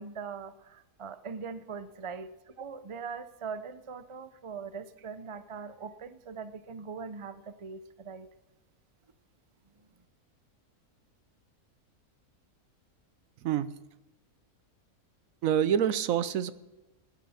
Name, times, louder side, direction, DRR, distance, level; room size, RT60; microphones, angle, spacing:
voice 1, 0.0-8.3, right 5 dB, 40° right, 12 dB, 0.4 m, -41 dB
voice 2, 13.4-13.7 15.4-16.5, right 9 dB, 70° right, 14 dB, 1.0 m, -26 dB
17.0 x 11.0 x 4.3 m, 1.1 s
omnidirectional pair, 1.6 m